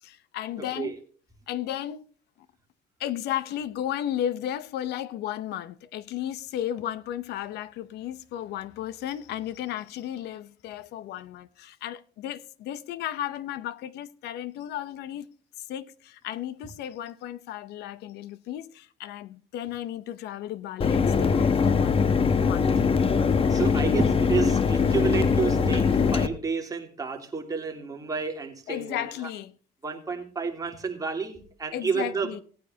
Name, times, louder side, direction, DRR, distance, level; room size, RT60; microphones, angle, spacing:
voice 1, 0.0-0.9 1.5-2.0 3.0-15.3 15.7-22.1 22.4-22.7 28.7-29.5 31.7-32.4, left 11 dB, 80° left, 0.8 m, -34 dB
Mechanisms, 20.8-26.3, left 5 dB, 35° left, 1.0 m, -22 dB
voice 2, 23.5-29.1 29.8-32.4, right 5 dB, 20° right, 3.1 m, -30 dB
18.0 x 9.5 x 2.8 m
cardioid pair, 110°, 17 cm